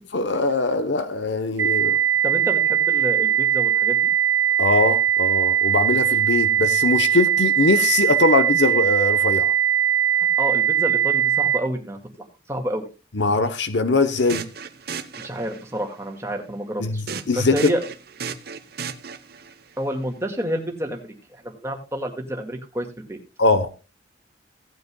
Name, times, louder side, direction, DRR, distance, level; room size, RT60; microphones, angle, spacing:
voice 1, 0.1-2.0 4.6-9.5 13.1-14.4 16.8-16.9 17.3-17.7 23.4-23.7, left 3 dB, 65° left, 0.9 m, -21 dB
sound 1, 1.6-11.6, right 10 dB, 85° right, 1.1 m, -20 dB
voice 2, 2.2-4.1 10.1-12.9 15.2-17.8 19.8-23.2, equal, 15° right, 1.9 m, -29 dB
sound 2, 14.1-15.8 17.1-19.5, right 6 dB, 55° right, 0.9 m, -35 dB
17.0 x 9.4 x 2.3 m
head